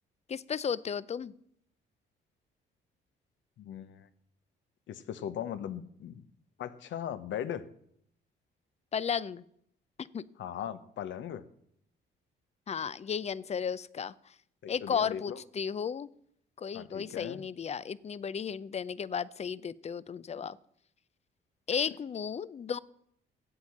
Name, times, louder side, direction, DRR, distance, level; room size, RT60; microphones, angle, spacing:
voice 1, 0.3-1.3 8.9-9.4 10.1-10.2 12.7-14.1 14.7-16.1 16.6-20.6 21.7-22.8, left 7 dB, 35° left, 19 dB, 0.5 m, -34 dB
voice 2, 3.6-4.1 4.9-6.2 6.6-7.6 10.4-11.4 14.6-15.4 16.7-17.4, left 9 dB, 70° left, 13 dB, 0.9 m, -38 dB
11.0 x 8.1 x 7.2 m, 0.71 s
cardioid pair, 90°, 20 cm